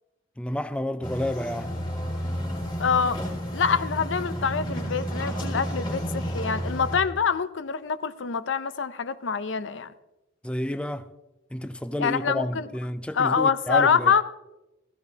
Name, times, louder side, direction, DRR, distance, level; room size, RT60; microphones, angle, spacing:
voice 1, 0.4-1.7 10.4-11.1 11.5-14.1, left 1 dB, 5° left, 0.3 m, -30 dB
sound 1, 1.0-7.0, equal, 25° left, 2.4 m, -31 dB
voice 2, 2.8-3.2 3.5-9.9 12.0-12.6 13.1-14.2, left 6 dB, 75° left, 0.6 m, -25 dB
15.5 x 15.0 x 2.8 m
head